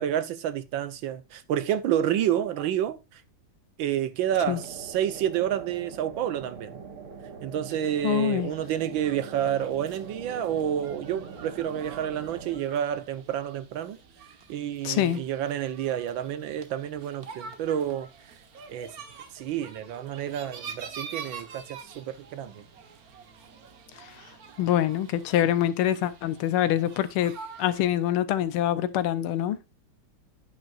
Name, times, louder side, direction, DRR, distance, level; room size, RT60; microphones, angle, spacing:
voice 1, 0.0-3.2 3.8-6.8 7.4-14.0 14.5-18.1 18.7-18.9 19.3-22.6, right 10 dB, 70° right, 1.5 m, -29 dB
sound 1, 4.3-12.6, right 5 dB, 85° right, 2.4 m, -43 dB
voice 2, 8.0-8.5 14.8-15.2 24.6-27.3 27.6-29.6, left 11 dB, 85° left, 1.7 m, -25 dB
sound 2, 8.6-27.9, right 6 dB, 50° right, 1.5 m, -46 dB
10.5 x 9.1 x 2.5 m
omnidirectional pair, 2.3 m